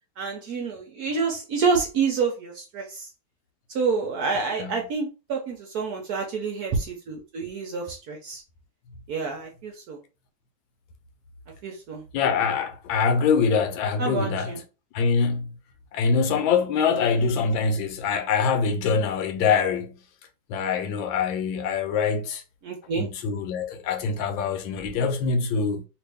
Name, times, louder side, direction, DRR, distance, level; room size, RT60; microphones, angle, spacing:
voice 1, 0.2-3.1 3.7-8.4 9.1-10.0 11.6-12.0 14.0-14.6 17.1-17.3 22.6-23.1, right 5 dB, 65° right, 1.0 m, -28 dB
voice 2, 12.1-14.6 14.9-15.6 15.9-20.0 20.5-22.4 23.0-25.9, left 5 dB, 75° left, 1.3 m, -24 dB
3.0 x 2.6 x 3.3 m
omnidirectional pair, 2.2 m